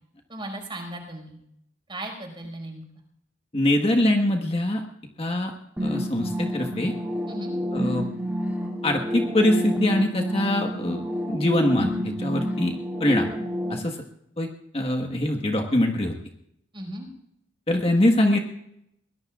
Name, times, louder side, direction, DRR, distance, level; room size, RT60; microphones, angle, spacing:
voice 1, 0.3-1.4 1.9-2.8 7.3-7.5 16.7-17.1, right 1 dB, 25° right, 2 dB, 5.2 m, -36 dB
voice 2, 3.5-4.8 5.2-5.5 5.8-6.9 7.7-8.1 8.8-12.7 13.0-13.3 13.7-14.0 14.4-14.5 14.7-16.1 17.7-18.4, left 1 dB, 30° left, 2 dB, 1.4 m, -23 dB
sound 1, 5.8-13.8, equal, 10° right, 2.7 m, -29 dB
23.0 x 20.0 x 2.5 m, 0.77 s
head